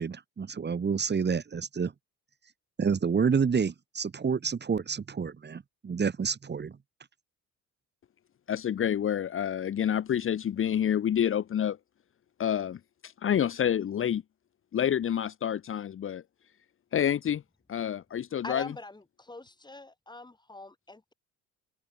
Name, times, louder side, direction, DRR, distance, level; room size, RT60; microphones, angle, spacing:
voice 1, 0.0-1.9 2.8-6.8, right 6 dB, 35° right, 4.9 m, -29 dB
voice 2, 8.5-11.8 12.4-14.2 14.7-16.2 16.9-17.4 17.7-18.7, left 9 dB, 40° left, 1.1 m, -28 dB
voice 3, 18.4-21.1, left 2 dB, 15° left, 6.6 m, -43 dB
cardioid pair, 95°, 31 cm